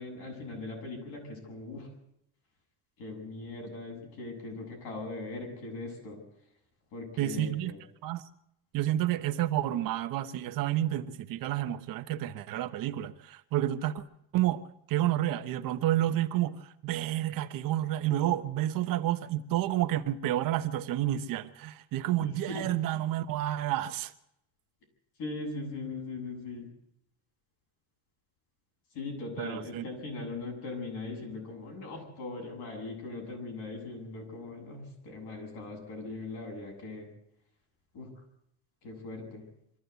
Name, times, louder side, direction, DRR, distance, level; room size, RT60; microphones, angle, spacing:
voice 1, 0.0-1.9 3.0-6.2 6.9-7.8 22.2-22.6 25.2-26.7 28.9-37.1 37.9-38.1 38.8-39.5, left 3 dB, 65° left, 7.8 m, -40 dB
voice 2, 7.2-7.7 8.0-8.2 8.7-14.0 14.3-14.6 14.9-24.1 29.4-29.8, right 13 dB, 55° right, 1.1 m, -30 dB
23.5 x 14.5 x 8.2 m
cardioid pair, 180°, 41 cm